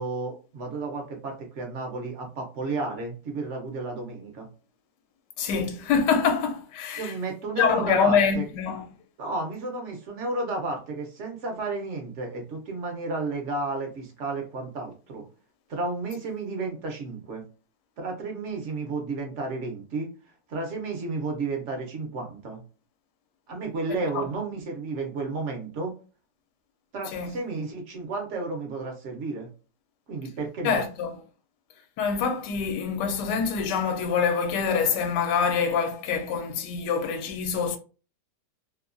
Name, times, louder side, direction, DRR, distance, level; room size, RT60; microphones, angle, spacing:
voice 1, 0.0-4.5 7.0-8.4 9.2-15.2 15.7-17.4 18.0-20.1 20.5-22.6 23.5-25.9 26.9-29.5 30.1-30.8, right 3 dB, 55° right, 0.8 m, -32 dB
voice 2, 5.4-7.1 7.6-8.8 27.1-27.3 30.6-31.2 32.0-37.8, left 6 dB, 80° left, 1.2 m, -25 dB
2.9 x 2.2 x 2.4 m
omnidirectional pair, 1.8 m